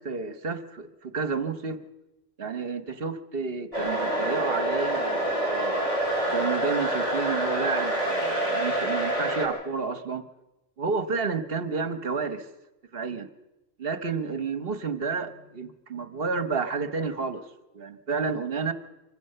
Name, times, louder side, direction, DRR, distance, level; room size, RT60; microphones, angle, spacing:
voice 1, 0.0-1.8 2.4-5.9 6.3-10.3 10.8-12.5 12.9-13.3 13.8-17.4 17.7-18.7, right 5 dB, 50° right, 11 dB, 1.2 m, -31 dB
sound 1, 3.7-9.5, right 1 dB, 25° left, 5.1 m, -27 dB
25.0 x 15.5 x 6.8 m, 1.0 s
omnidirectional pair, 1.3 m